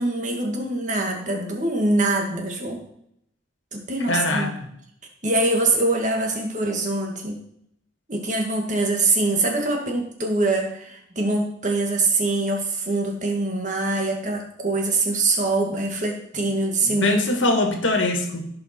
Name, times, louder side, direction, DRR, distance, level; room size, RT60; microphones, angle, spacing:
voice 1, 0.0-2.8 3.7-4.5 5.2-7.4 8.1-17.2, right 2 dB, 40° right, 1 dB, 1.9 m, -24 dB
voice 2, 4.1-4.5 16.8-18.5, left 2 dB, 85° left, 5 dB, 1.7 m, -22 dB
16.0 x 5.5 x 4.4 m, 0.72 s
head